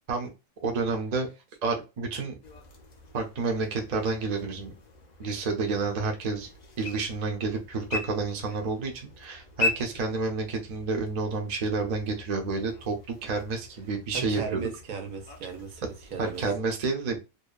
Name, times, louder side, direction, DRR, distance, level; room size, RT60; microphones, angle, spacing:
voice 1, 0.6-1.3 1.6-2.4 3.1-4.7 5.2-6.5 6.8-14.6 16.2-17.2, right 4 dB, 40° right, 0.6 m, -29 dB
sound 1, 2.4-16.5, left 3 dB, 45° left, 0.6 m, -40 dB
voice 2, 14.1-16.4, right 6 dB, 90° right, 1.2 m, -36 dB
2.7 x 2.1 x 2.3 m
omnidirectional pair, 1.4 m